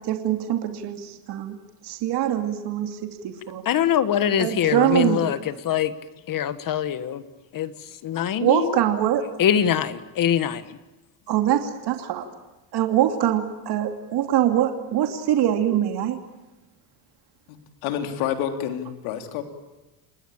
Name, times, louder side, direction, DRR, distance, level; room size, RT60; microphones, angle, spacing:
voice 1, 0.0-1.6 1.8-3.6 4.4-5.3 8.4-9.2 11.3-12.3 12.7-16.2, right 11 dB, 55° right, 2.8 m, -23 dB
voice 2, 3.6-5.9 6.3-7.2 7.5-7.7 8.0-8.8 9.4-10.8, left 9 dB, 45° left, 1.5 m, -23 dB
voice 3, 17.8-19.4, left 9 dB, 80° left, 3.5 m, -28 dB
29.0 x 19.5 x 8.8 m
cardioid pair, 120°, 48 cm